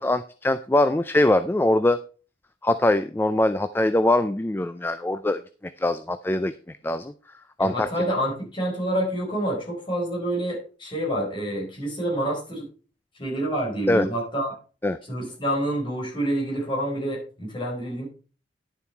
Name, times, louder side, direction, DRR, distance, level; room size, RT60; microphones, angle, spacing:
voice 1, 0.0-2.0 2.6-7.1 7.6-7.9 13.9-14.1 14.8-15.0, left 1 dB, 10° left, 12 dB, 0.3 m, -22 dB
voice 2, 7.6-12.6 13.2-14.5 15.1-18.0, right 1 dB, 30° left, -2 dB, 4.9 m, -27 dB
11.0 x 7.1 x 4.4 m, 0.38 s
head